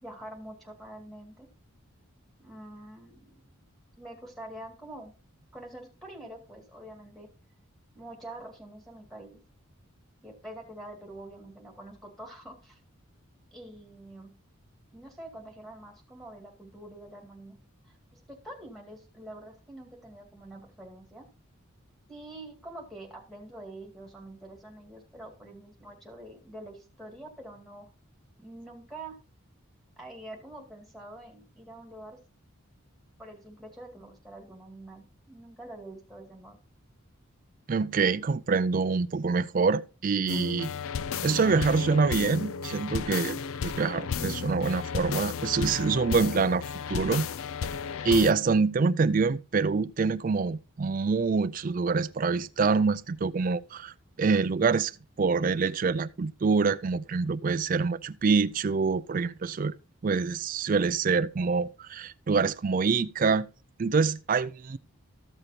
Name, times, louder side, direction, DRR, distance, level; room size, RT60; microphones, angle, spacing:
voice 1, 0.0-1.5 2.4-3.3 4.0-5.1 5.5-7.3 7.9-9.4 10.2-12.8 13.5-14.3 14.9-17.6 17.8-21.2 22.1-27.9 28.4-29.1 30.0-32.2 33.2-36.6, right 1 dB, ahead, 2.1 m, -46 dB
voice 2, 37.7-40.7 41.2-46.6 46.9-47.3 48.0-59.7 60.0-63.5 63.8-64.8, right 4 dB, 40° right, 0.3 m, -26 dB
sound 1, 40.3-48.3, left 6 dB, 65° left, 0.4 m, -33 dB
14.0 x 6.6 x 2.8 m
head